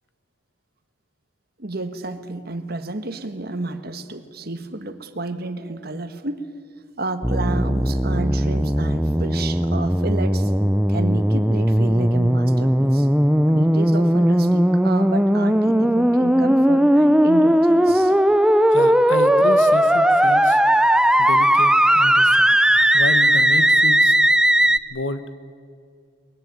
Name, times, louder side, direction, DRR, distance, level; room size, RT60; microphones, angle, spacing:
voice 1, 1.6-6.4 7.0-10.5 10.9-13.1 13.5-18.1, right 2 dB, 55° right, 9 dB, 1.6 m, -31 dB
sound 1, 7.2-24.8, equal, 5° right, 0.6 m, -17 dB
voice 2, 18.7-20.6 21.2-22.6 22.9-24.1 24.9-25.4, left 2 dB, 90° left, 12 dB, 1.3 m, -30 dB
22.5 x 21.5 x 9.4 m, 2.3 s
head